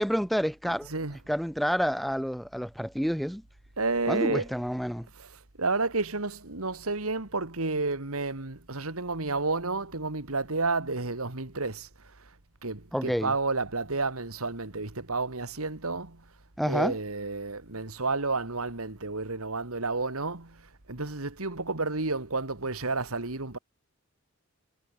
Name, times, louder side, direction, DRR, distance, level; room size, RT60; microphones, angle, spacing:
voice 1, 0.0-0.9 1.3-3.4 4.1-5.1 12.9-13.3 16.6-17.0, equal, ahead, 1.3 m, -28 dB
voice 2, 0.6-1.2 3.8-4.5 5.1-11.9 12.6-16.2 16.7-23.6, right 3 dB, 85° right, 2.4 m, -31 dB
head